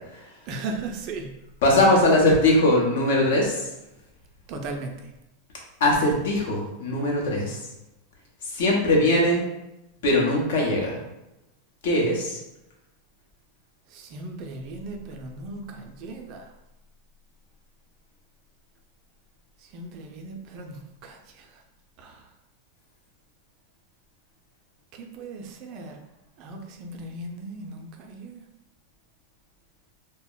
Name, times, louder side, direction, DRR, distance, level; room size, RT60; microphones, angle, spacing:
voice 1, 0.5-1.3 1.9-2.3 4.5-5.1 13.9-16.5 19.6-21.6 22.0-22.3 24.9-26.0 26.4-28.4, right 3 dB, 50° right, 4 dB, 0.4 m, -37 dB
voice 2, 1.6-3.6 5.8-7.6 8.5-9.4 10.0-10.9 11.8-12.4, left 1 dB, 70° left, -2 dB, 0.8 m, -20 dB
2.2 x 2.0 x 3.7 m, 0.93 s
hypercardioid pair, 100°, 0 cm